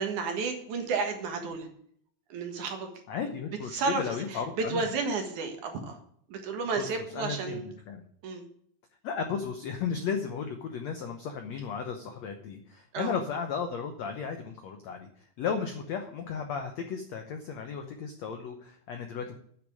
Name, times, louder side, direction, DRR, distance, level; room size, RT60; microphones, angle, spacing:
voice 1, 0.0-1.7 2.3-2.9 3.7-6.0 6.3-7.7 8.2-8.4 12.9-13.1, right 4 dB, 60° right, 4 dB, 2.6 m, -32 dB
voice 2, 3.1-4.9 6.8-8.0 9.0-19.3, left 6 dB, 85° left, 6 dB, 1.5 m, -35 dB
9.9 x 6.2 x 8.7 m, 0.64 s
omnidirectional pair, 4.6 m